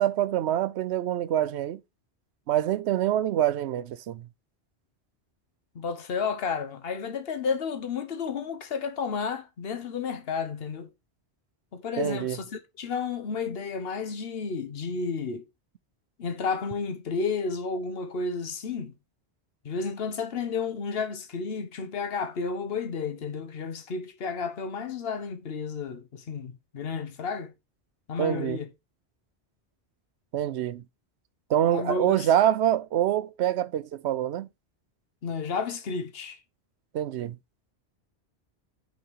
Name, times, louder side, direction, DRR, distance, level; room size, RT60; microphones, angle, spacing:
voice 1, 0.0-1.8 2.5-4.3 12.0-12.4 28.2-28.6 30.3-30.8 31.5-34.5 36.9-37.4, right 11 dB, 80° right, 0.9 m, -25 dB
voice 2, 5.7-10.9 11.7-15.4 16.2-18.9 19.6-27.5 28.1-28.7 31.7-32.3 35.2-36.4, left 5 dB, 65° left, 1.2 m, -32 dB
5.6 x 4.0 x 5.3 m
omnidirectional pair, 1.1 m